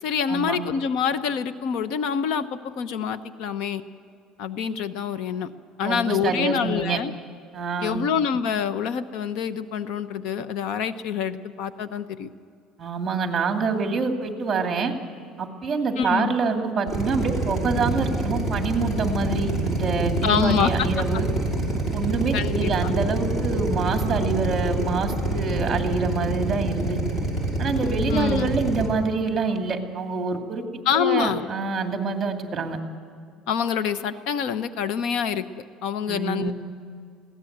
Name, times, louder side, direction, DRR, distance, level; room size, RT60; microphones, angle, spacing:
voice 1, 0.0-3.8 4.4-5.5 5.8-7.1 7.8-12.3 16.0-16.3 20.2-20.9 22.3-22.9 28.1-28.5 30.8-31.5 33.5-35.5 35.8-36.5, left 7 dB, 65° left, 12 dB, 0.9 m, -26 dB
voice 2, 5.8-7.0 7.5-8.0 12.8-14.9 15.4-21.3 21.9-27.0 27.6-32.8 36.1-36.5, right 4 dB, 25° right, 4 dB, 2.5 m, -26 dB
Drill, 16.9-28.9, right 2 dB, 15° left, 5.8 m, -26 dB
22.0 x 17.0 x 8.0 m, 2.3 s
cardioid pair, 150°, 0 cm